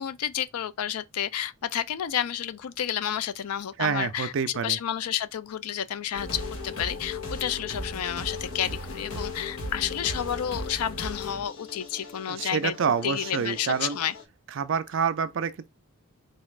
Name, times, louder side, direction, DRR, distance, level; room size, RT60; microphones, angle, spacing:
voice 1, 0.0-4.3 4.6-12.8 13.0-14.1, left 10 dB, 85° left, 0.4 m, -30 dB
voice 2, 3.8-4.8 12.3-14.0 14.5-15.7, right 6 dB, 55° right, 0.4 m, -27 dB
sound 1, 6.1-14.2, left 2 dB, 65° left, 1.0 m, -37 dB
4.0 x 2.4 x 3.2 m
head